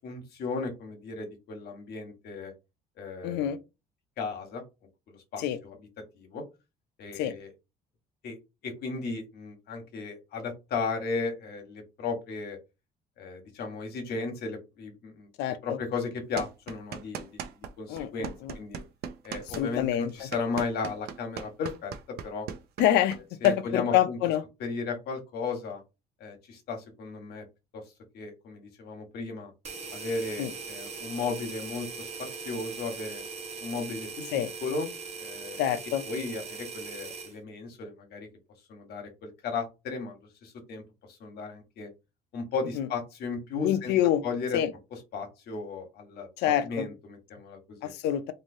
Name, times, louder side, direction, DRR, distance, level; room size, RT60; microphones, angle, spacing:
voice 1, 0.0-2.5 3.0-3.5 4.2-4.6 5.1-5.8 6.1-6.4 7.0-7.5 8.2-8.4 8.6-12.6 13.2-15.3 15.6-17.5 17.8-18.8 19.2-22.5 23.4-24.2 24.6-25.8 26.2-27.4 27.7-27.8 28.1-29.5 29.9-33.2 33.6-34.9 35.2-35.6 36.0-38.3 38.7-40.8 41.2-41.9 42.3-43.9 44.2-44.6 45.1-47.9, left 4 dB, 70° left, 1.3 m, -35 dB
voice 2, 3.2-3.6 5.4-5.6 7.2-7.3 15.4-15.8 17.9-18.6 19.6-20.1 22.8-23.2 23.4-24.4 30.4-30.5 34.3-34.5 35.6-36.0 42.8-42.9 43.6-44.2 44.5-44.7 46.4-46.9 47.8-48.3, left 11 dB, 85° left, 0.5 m, -26 dB
sound 1, 16.4-17.7 18.0-23.6, right 8 dB, 70° right, 0.5 m, -38 dB
sound 2, 29.6-37.3, right 4 dB, 40° right, 0.9 m, -40 dB
3.2 x 2.7 x 2.7 m
cardioid pair, 110°, 17 cm